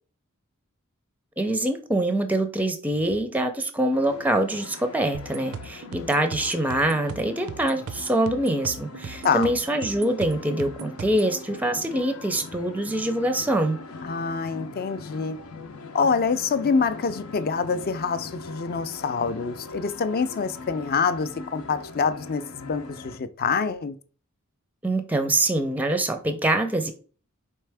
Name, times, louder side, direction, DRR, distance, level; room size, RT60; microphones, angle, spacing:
voice 1, 1.4-13.8 24.8-26.9, right 1 dB, 10° right, 0.5 m, -24 dB
sound 1, 3.9-23.2, left 3 dB, 90° left, 0.7 m, -42 dB
sound 2, 5.1-11.3, right 5 dB, 85° right, 0.5 m, -39 dB
voice 2, 14.0-15.4 15.9-23.9, left 5 dB, 45° left, 0.4 m, -26 dB
4.5 x 3.3 x 3.4 m
head